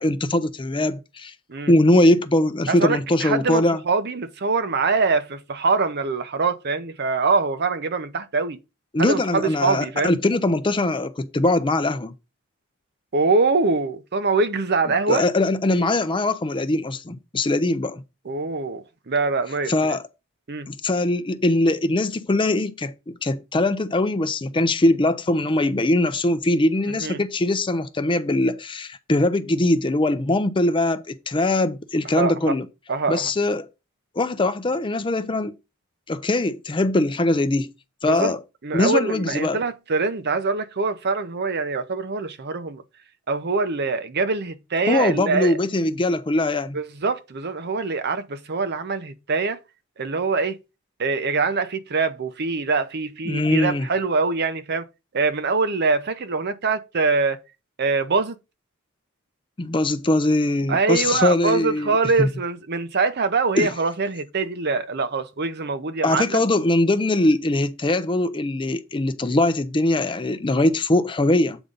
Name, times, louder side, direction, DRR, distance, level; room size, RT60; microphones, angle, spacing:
voice 1, 0.0-1.3 1.7-3.8 8.9-12.1 15.1-18.0 19.7-20.0 20.7-32.7 33.1-33.6 34.2-35.5 36.1-37.7 38.0-38.4 38.7-39.6 44.9-46.8 53.3-53.9 59.6-62.3 63.6-63.7 66.0-71.6, left 2 dB, 25° left, 0.5 m, -21 dB
voice 2, 2.7-8.6 9.0-10.2 13.1-15.2 18.2-20.0 20.5-20.7 26.9-27.2 32.0-32.5 32.9-33.3 38.0-38.3 38.6-42.8 43.3-45.6 46.7-49.6 50.0-50.6 51.0-54.8 55.1-57.4 57.8-58.4 60.7-66.4, right 4 dB, 50° right, 0.7 m, -24 dB
8.1 x 3.8 x 5.3 m
head